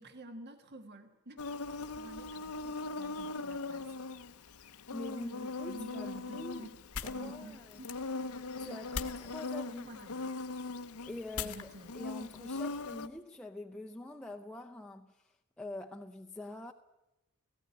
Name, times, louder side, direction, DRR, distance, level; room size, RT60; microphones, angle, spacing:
voice 1, 0.0-4.0 5.7-6.7 7.0-8.0 9.9-10.2 11.4-11.9, right 1 dB, 50° right, 6 dB, 1.5 m, -50 dB
Insect, 1.4-13.1, left 3 dB, 75° left, 0.9 m, -40 dB
voice 2, 4.9-6.7 7.0-7.8 8.6-10.0 11.1-16.7, left 1 dB, 5° left, 1 dB, 0.7 m, -45 dB
sound 1, 5.7-13.2, left 6 dB, 90° left, 1.5 m, -46 dB
17.5 x 15.5 x 9.7 m, 0.98 s
head